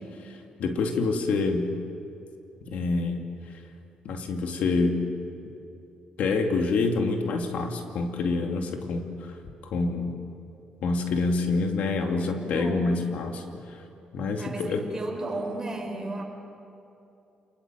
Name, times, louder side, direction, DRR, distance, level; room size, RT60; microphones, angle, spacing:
voice 1, 0.2-1.7 2.7-3.2 4.0-5.0 6.2-9.3 9.6-10.2 10.8-13.8 14.1-14.8, left 3 dB, 75° left, 3 dB, 2.5 m, -27 dB
voice 2, 12.0-13.0 14.4-16.2, right 2 dB, 20° right, 2 dB, 5.0 m, -35 dB
28.5 x 20.5 x 7.7 m, 2.7 s
cardioid pair, 110°, 3 cm